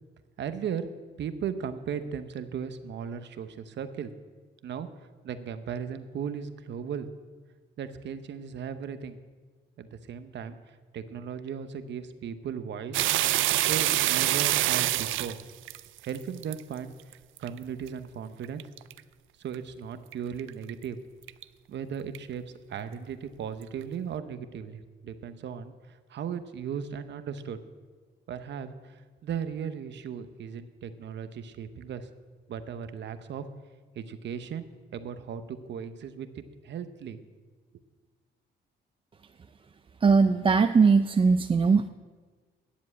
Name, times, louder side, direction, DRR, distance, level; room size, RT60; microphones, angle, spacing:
voice 1, 0.4-0.9 1.2-4.1 4.6-4.9 5.2-7.1 7.8-9.2 9.8-13.1 13.6-15.4 16.0-16.9 17.4-18.6 19.4-21.0 21.7-22.4 22.7-25.7 26.1-27.6 28.3-29.0 29.2-32.1 32.5-33.4 34.0-34.7 34.9-37.2, right 7 dB, 65° right, 10 dB, 0.9 m, -36 dB
sound 1, 12.9-16.6 17.1-17.5 17.9-18.0 18.4-19.0 19.5-19.6 20.1-20.2 20.4-20.7 21.3-21.4 22.1-22.2, right 15 dB, 80° right, 0.4 m, -25 dB
voice 2, 40.0-41.9, right 5 dB, 25° right, 8 dB, 0.4 m, -20 dB
10.5 x 7.4 x 8.3 m, 1.4 s
cardioid pair, 90°, 20 cm